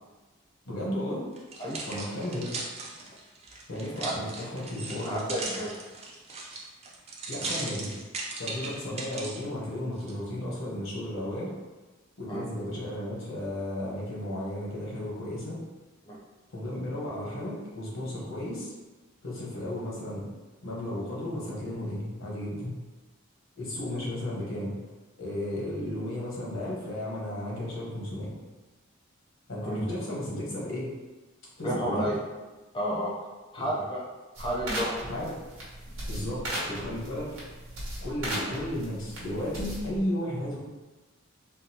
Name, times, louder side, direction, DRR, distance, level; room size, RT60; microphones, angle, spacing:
voice 1, 0.6-1.2 1.8-2.5 3.7-5.2 7.3-7.9 8.4-11.5 12.2-15.6 16.5-18.7 19.2-20.3 20.6-22.8 23.6-24.7 25.2-28.3 29.5-30.9 31.6-32.1 33.6-33.7 35.1-35.3 36.1-37.4 38.0-40.6, left 1 dB, 75° left, -4 dB, 1.0 m, -34 dB
sound 1, 1.4-9.4 10.0-10.1, right 3 dB, 30° right, 0.5 m, -38 dB
voice 2, 5.0-5.7 12.3-12.4 16.1-16.2 29.6-29.8 31.6-32.2 32.7-33.1 33.5-34.0 34.4-34.9, equal, 25° left, -5 dB, 0.5 m, -31 dB
sound 2, 34.3-40.0, right 1 dB, 85° right, 1.0 m, -37 dB
3.7 x 2.3 x 2.8 m, 1.2 s
head